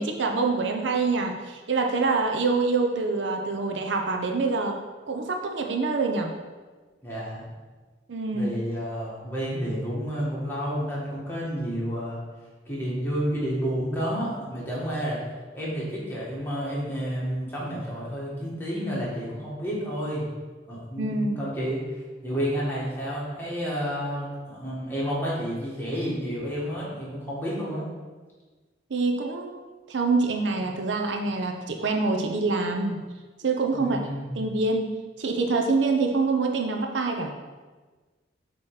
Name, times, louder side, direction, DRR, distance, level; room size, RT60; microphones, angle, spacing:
voice 1, 0.0-4.8 5.1-6.3 8.1-8.5 21.0-21.4 28.9-29.6 29.9-33.1 33.4-34.0 34.4-37.3, right 3 dB, 70° right, 3 dB, 0.6 m, -25 dB
voice 2, 7.0-7.4 8.3-12.2 12.6-15.2 15.5-20.2 20.7-27.9 33.7-34.4, equal, 10° left, -7 dB, 1.7 m, -30 dB
7.3 x 3.1 x 4.7 m, 1.3 s
head